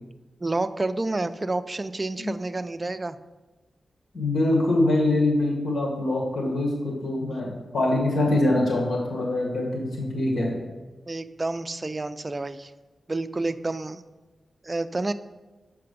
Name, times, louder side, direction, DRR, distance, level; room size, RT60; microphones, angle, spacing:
voice 1, 0.4-3.2 11.1-12.7 13.1-14.0 14.6-15.1, right 2 dB, 30° right, 10 dB, 0.4 m, -29 dB
voice 2, 4.1-10.6, left 2 dB, 75° left, -1 dB, 1.7 m, -24 dB
6.7 x 5.8 x 5.2 m, 1.2 s
wide cardioid pair, 80°, 0 cm